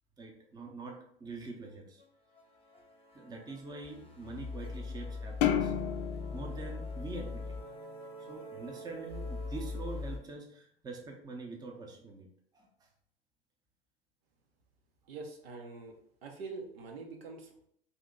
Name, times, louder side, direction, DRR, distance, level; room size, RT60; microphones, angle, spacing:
voice 1, 0.2-2.0 3.1-5.7 6.3-7.6 8.3-12.3 12.5-12.9, right 3 dB, 15° right, 1 dB, 0.6 m, -45 dB
sound 1, 1.6-1.7 2.0-2.1 2.3-10.2, left 3 dB, 20° left, 0.8 m, -42 dB
sound 2, 5.4-8.0, left 10 dB, 50° left, 0.5 m, -33 dB
voice 2, 15.1-15.9 16.2-17.7, right 4 dB, 75° right, 1 dB, 0.8 m, -44 dB
2.8 x 2.7 x 3.7 m, 0.68 s
hypercardioid pair, 90°, 30 cm